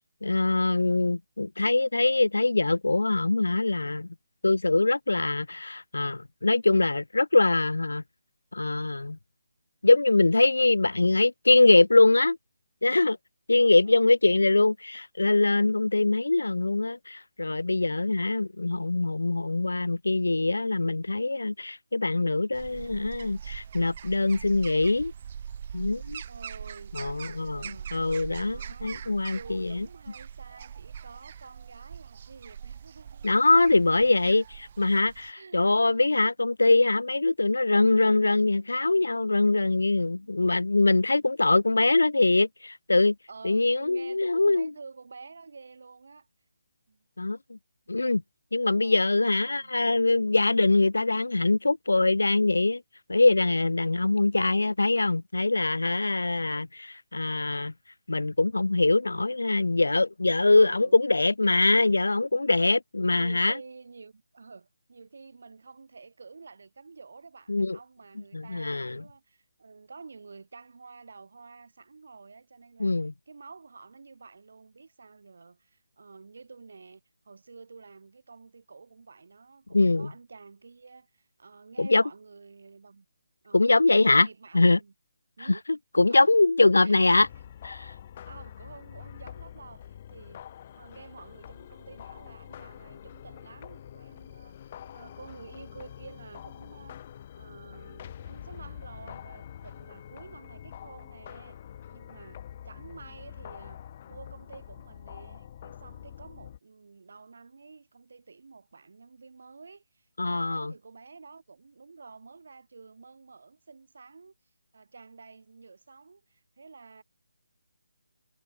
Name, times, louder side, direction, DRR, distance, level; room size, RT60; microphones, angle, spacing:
voice 1, 0.2-4.1 4.4-8.0 8.5-9.2 9.8-12.4 12.8-13.2 13.5-25.1 25.7-26.2 26.9-29.9 33.2-43.2 43.4-44.7 47.2-47.6 47.9-48.2 48.5-52.8 53.1-57.7 58.1-63.5 67.5-67.8 68.3-69.0 72.8-73.1 79.7-80.1 81.8-82.0 83.5-84.3 84.5-84.8 86.0-87.3 87.6-87.9 110.2-110.7, left 2 dB, 70° left, 0.3 m, -23 dB
voice 2, 13.5-14.1 26.3-27.9 28.4-33.7 35.3-36.1 39.5-39.7 40.1-40.5 41.0-41.2 43.3-46.3 46.9-47.0 48.7-49.7 60.5-61.0 63.1-72.9 73.3-83.1 83.4-84.9 85.4-85.6 86.1-86.4 86.8-87.2 88.3-90.4 90.7-94.6 94.9-97.0 97.4-101.6 101.9-114.3 114.7-117.0, right 4 dB, 55° right, 2.7 m, -49 dB
sound 1, 22.5-35.3, right 8 dB, 35° right, 1.0 m, -42 dB
Horror Movie Cue, 87.1-106.6, left 10 dB, 30° left, 1.0 m, -45 dB
figure-of-eight pair, 150°, 0 cm